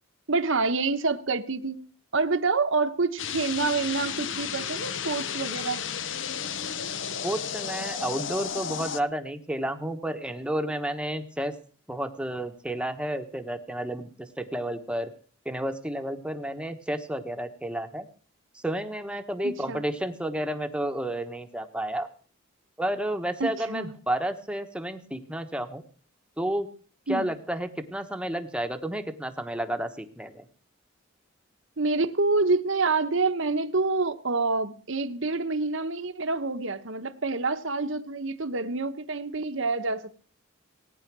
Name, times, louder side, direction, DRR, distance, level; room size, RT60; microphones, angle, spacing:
voice 1, 0.3-1.8 2.1-5.8 19.4-19.8 23.4-23.9 27.1-27.3 31.8-40.1, right 3 dB, 65° right, 1.1 m, -27 dB
sound 1, 3.2-9.0, left 7 dB, 60° left, 0.8 m, -33 dB
voice 2, 7.2-11.5 11.9-15.1 15.4-18.1 18.5-22.1 22.8-25.8 26.4-26.7 27.1-30.5, right 1 dB, 5° right, 1.1 m, -31 dB
18.5 x 9.8 x 6.1 m
head